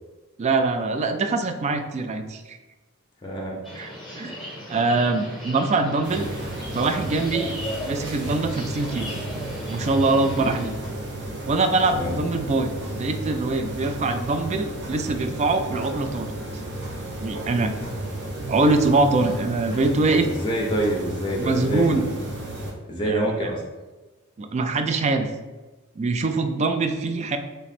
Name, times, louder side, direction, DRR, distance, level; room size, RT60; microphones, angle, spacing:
voice 1, 0.4-2.6 3.8-3.9 4.2-4.4 4.7-6.3 6.7-7.6 7.8-9.1 9.7-10.7 11.5-16.3 17.2-17.7 18.5-20.3 21.4-22.1 23.0-23.3 24.4-25.3 26.0-27.4, right 3 dB, 30° right, 7 dB, 0.3 m, -23 dB
voice 2, 3.2-3.6 10.2-10.5 11.9-12.2 20.2-22.0 22.9-23.6, right 1 dB, 20° left, 0 dB, 0.6 m, -26 dB
sound 1, 3.6-10.7, equal, ahead, 1.0 m, -37 dB
sound 2, 6.0-22.7, right 1 dB, 55° right, 0.8 m, -33 dB
3.3 x 3.0 x 4.1 m, 1.2 s
head